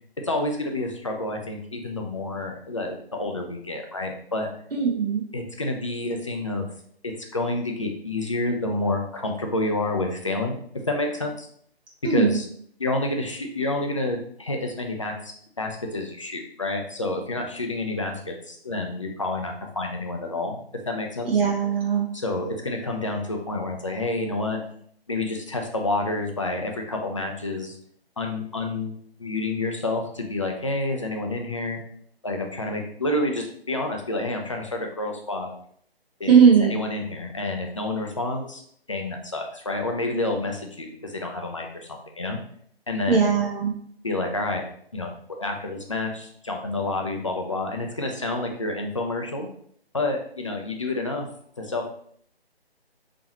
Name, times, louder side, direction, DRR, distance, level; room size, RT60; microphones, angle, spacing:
voice 1, 0.2-4.5 5.3-6.7 7.0-10.6 10.9-11.5 12.0-12.4 12.8-21.3 22.1-24.6 25.1-27.8 28.2-28.9 29.2-31.8 32.2-35.5 36.2-38.6 38.9-42.4 42.9-43.3 44.0-44.6 44.9-49.5 49.9-51.3 51.6-51.9, left 2 dB, 30° left, 2 dB, 0.4 m, -29 dB
voice 2, 4.7-5.2 12.0-12.4 21.2-22.0 36.3-36.7 43.1-43.7, right 6 dB, 65° right, -3 dB, 0.8 m, -19 dB
4.0 x 2.9 x 2.9 m, 0.63 s
figure-of-eight pair, 155°, 31 cm